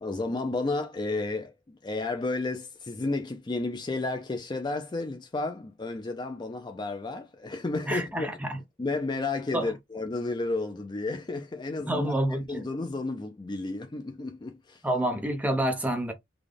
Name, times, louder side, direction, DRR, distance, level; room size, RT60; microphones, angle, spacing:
voice 1, 0.0-8.3 8.8-12.1 12.5-14.8, left 2 dB, 25° left, 0.4 m, -32 dB
voice 2, 7.9-8.6 9.5-9.7 11.9-12.6 14.8-16.1, right 1 dB, 10° right, 0.8 m, -28 dB
4.0 x 2.3 x 3.3 m
head